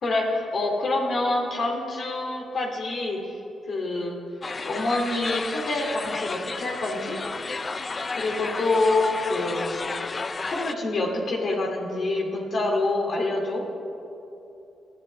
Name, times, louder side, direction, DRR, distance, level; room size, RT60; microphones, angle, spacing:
voice 1, 0.0-3.3 3.7-4.2 4.6-7.2 8.2-9.8 10.5-13.7, left 2 dB, 60° left, 0 dB, 2.6 m, -26 dB
sound 1, 4.4-10.7, left 4 dB, 35° left, 0.4 m, -32 dB
19.5 x 11.5 x 3.4 m, 2.9 s
cardioid pair, 70°, 0 cm